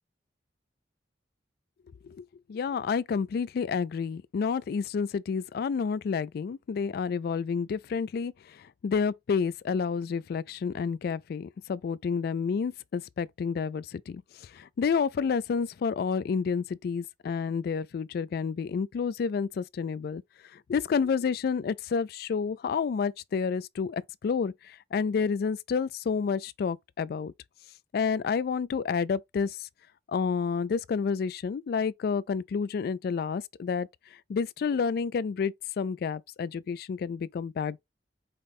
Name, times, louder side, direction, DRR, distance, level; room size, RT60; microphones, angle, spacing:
voice 1, 2.1-20.2 20.5-27.3 27.9-29.7 30.1-33.9 34.3-37.8, left 5 dB, 60° left, 0.3 m, -30 dB
5.0 x 2.2 x 4.1 m
head